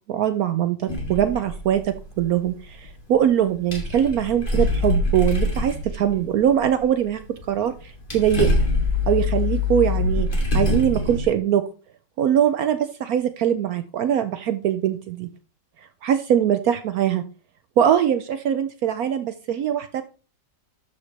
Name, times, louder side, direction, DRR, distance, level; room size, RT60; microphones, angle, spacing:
voice 1, 0.1-8.5 9.1-11.7 12.2-15.3 16.0-17.2 17.8-20.0, right 10 dB, 70° right, 11 dB, 0.9 m, -22 dB
sound 1, 0.9-2.4 2.9-3.0 3.5-7.4 7.7-11.2, left 2 dB, 25° left, 2.6 m, -24 dB
12.5 x 5.7 x 3.2 m, 0.35 s
omnidirectional pair, 2.0 m